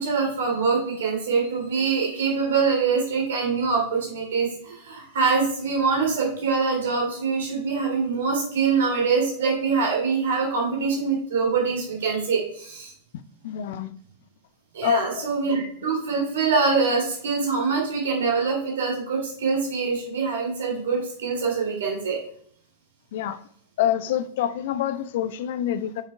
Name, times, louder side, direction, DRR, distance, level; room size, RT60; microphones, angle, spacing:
voice 1, 0.0-12.9 14.7-22.2, right 5 dB, 60° right, 2.8 m, -24 dB
voice 2, 13.4-13.9 14.8-15.3 23.1-23.4 23.8-26.0, left 10 dB, 55° left, 0.4 m, -26 dB
8.1 x 6.5 x 2.3 m
figure-of-eight pair, 90°, 0 cm